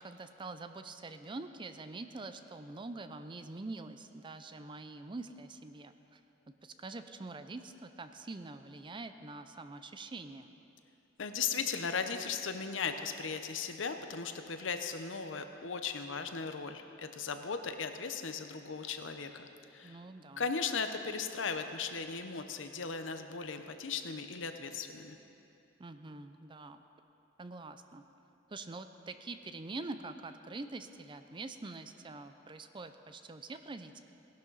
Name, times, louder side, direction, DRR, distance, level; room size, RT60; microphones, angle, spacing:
voice 1, 0.0-6.2 6.6-10.5 19.8-20.4 25.8-26.8 27.4-28.0 28.5-34.0, right 3 dB, 25° right, 9 dB, 0.5 m, -45 dB
voice 2, 11.2-20.0 20.4-25.2, left 5 dB, 75° left, 7 dB, 0.8 m, -37 dB
18.5 x 11.5 x 4.0 m, 2.8 s
head